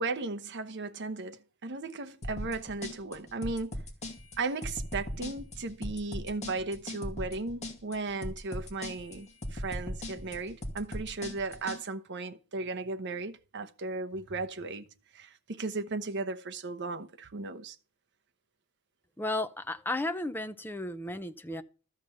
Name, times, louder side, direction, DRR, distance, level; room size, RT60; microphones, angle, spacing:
voice 1, 0.0-3.8 4.4-14.9 15.1-17.8, right 3 dB, 50° right, 1.0 m, -36 dB
sound 1, 2.2-11.8, left 1 dB, 30° left, 2.1 m, -38 dB
voice 2, 19.2-21.6, left 2 dB, 10° left, 0.6 m, -34 dB
13.5 x 5.3 x 7.8 m
head